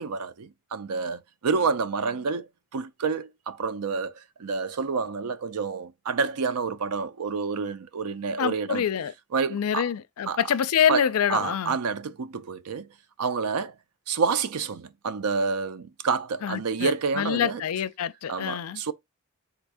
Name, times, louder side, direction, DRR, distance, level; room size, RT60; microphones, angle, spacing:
voice 1, 0.0-8.8 9.3-9.9 10.3-10.4 10.9-11.0 11.3-12.9 13.2-13.7 14.1-17.6 18.3-18.9, right 5 dB, 90° right, 0.5 m, -28 dB
voice 2, 8.4-9.1 9.5-11.8 16.4-18.8, left 8 dB, 75° left, 0.4 m, -26 dB
3.9 x 2.6 x 4.7 m
head